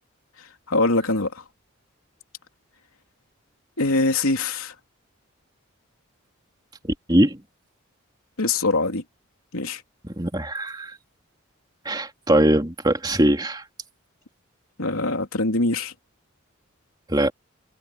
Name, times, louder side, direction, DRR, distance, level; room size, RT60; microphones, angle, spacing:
voice 1, 0.7-1.4 3.8-4.7 8.4-9.0 9.5-9.8 14.8-15.9, left 2 dB, 85° left, 3.2 m, -23 dB
voice 2, 6.8-7.4 10.0-11.0 11.8-13.6 17.1-17.3, right 1 dB, 20° right, 3.1 m, -21 dB
head